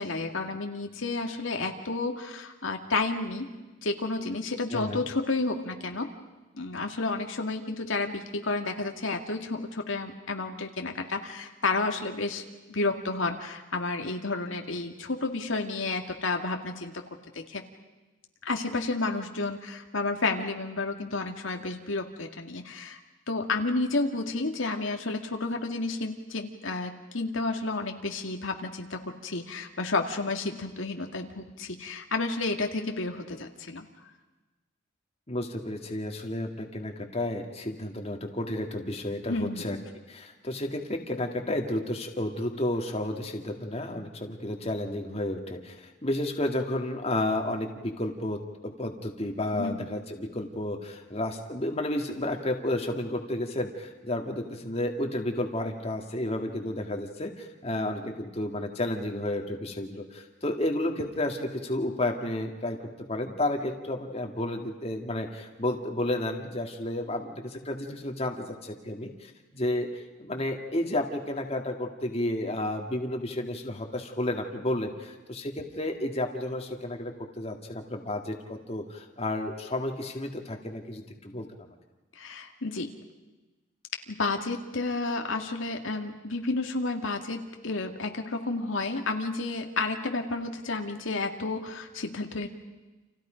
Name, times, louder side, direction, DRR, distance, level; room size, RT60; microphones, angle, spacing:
voice 1, 0.0-3.5 3.8-6.1 6.5-12.4 12.7-17.0 17.3-17.6 18.4-23.0 23.3-33.9 39.3-39.8 49.5-49.9 82.2-82.9 84.1-92.5, left 3 dB, 80° left, 3 dB, 2.1 m, -31 dB
voice 2, 4.7-5.0 35.3-39.8 40.1-62.8 63.1-69.9 70.2-81.7, left 1 dB, 30° left, 3 dB, 2.1 m, -32 dB
29.5 x 28.0 x 5.2 m, 1.1 s
head